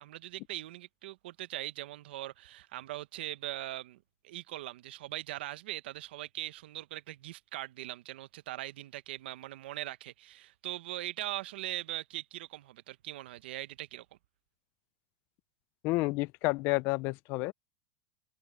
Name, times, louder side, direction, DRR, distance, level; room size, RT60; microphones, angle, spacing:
voice 1, 0.0-14.0, right 15 dB, 80° right, 0.9 m, -41 dB
voice 2, 15.8-17.5, left 23 dB, 40° left, 0.4 m, -30 dB
supercardioid pair, 165°, 6 cm